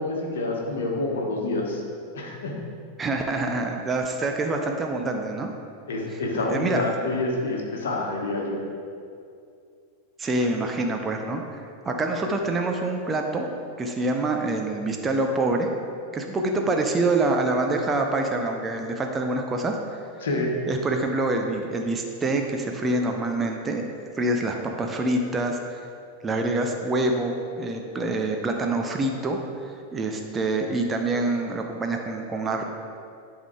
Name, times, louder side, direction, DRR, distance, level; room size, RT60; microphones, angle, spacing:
voice 1, 0.0-1.8 2.1-2.5 5.9-8.6 20.2-20.5, left 2 dB, 60° left, -1 dB, 1.4 m, -27 dB
voice 2, 3.0-5.5 6.1-6.8 10.2-13.5 13.8-15.7 16.1-19.8 20.7-23.9 24.2-25.8 26.2-32.6, right 2 dB, 20° right, 3 dB, 0.7 m, -26 dB
11.0 x 3.7 x 4.8 m, 2.4 s
figure-of-eight pair, 90°, 0 cm